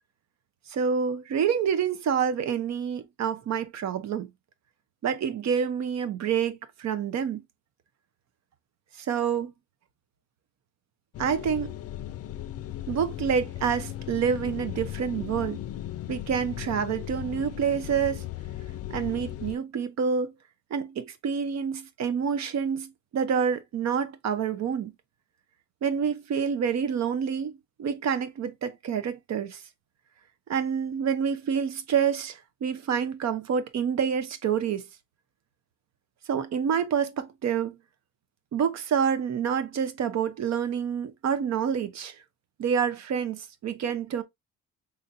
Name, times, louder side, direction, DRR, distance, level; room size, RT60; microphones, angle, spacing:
voice 1, 0.7-4.3 5.0-7.4 9.0-9.5 11.2-11.7 12.9-15.6 16.1-18.3 18.9-20.3 20.7-24.9 25.8-27.5 27.8-29.6 30.5-34.8 36.3-37.8 38.5-42.1 42.6-44.2, right 7 dB, 60° right, 0.8 m, -27 dB
sound 1, 11.1-19.6, left 12 dB, 55° left, 0.4 m, -37 dB
3.8 x 3.2 x 2.6 m
cardioid pair, 90°, 30 cm